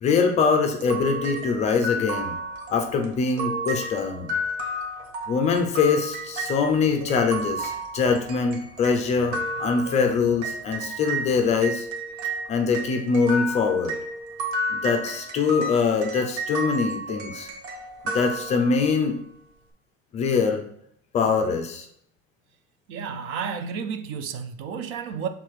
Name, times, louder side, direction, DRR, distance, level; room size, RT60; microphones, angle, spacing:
voice 1, 0.0-2.3 2.7-4.4 5.3-11.9 12.5-14.0 14.7-17.5 18.1-19.1 20.1-20.7 21.1-21.9, left 5 dB, 20° left, 0.5 m, -23 dB
sound 1, 0.8-11.3 11.6-19.0, right 1 dB, 75° right, 1.7 m, -32 dB
voice 2, 22.9-25.3, right 6 dB, 40° right, 0.5 m, -31 dB
6.2 x 3.8 x 4.9 m
cardioid pair, 175°, 32 cm